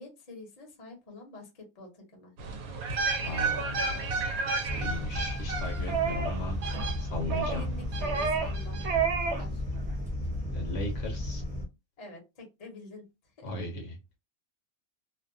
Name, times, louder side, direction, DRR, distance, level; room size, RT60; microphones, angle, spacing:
voice 1, 0.0-2.3 7.3-8.9 9.4-9.6 12.0-13.1, left 2 dB, 35° left, 1 dB, 0.8 m, -47 dB
sound 1, 2.4-7.4 7.9-8.9 9.1-9.2, right 3 dB, 90° right, 1.1 m, -33 dB
voice 2, 3.2-4.2 4.7-6.6 7.0-7.7 10.5-11.4 13.4-14.0, left 2 dB, 65° left, 2 dB, 1.1 m, -37 dB
sound 2, 4.7-11.7, left 1 dB, 5° right, 0.7 m, -34 dB
sound 3, 5.9-6.4 6.6-6.9 7.3-7.7 8.0-8.6 8.8-9.4 9.8-9.9, right 6 dB, 65° right, 0.8 m, -30 dB
2.7 x 2.1 x 2.5 m, 0.24 s
omnidirectional pair, 1.5 m